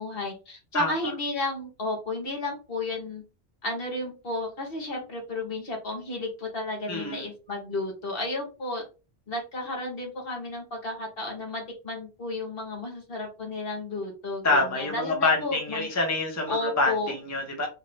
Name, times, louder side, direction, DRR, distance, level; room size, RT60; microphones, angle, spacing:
voice 1, 0.0-3.2 3.6-8.8 9.3-15.9 16.5-17.1, left 2 dB, 55° left, 1 dB, 1.5 m, -33 dB
voice 2, 6.9-7.2 14.4-17.7, left 3 dB, 15° left, 1 dB, 0.8 m, -26 dB
3.7 x 2.7 x 3.2 m, 0.31 s
omnidirectional pair, 1.2 m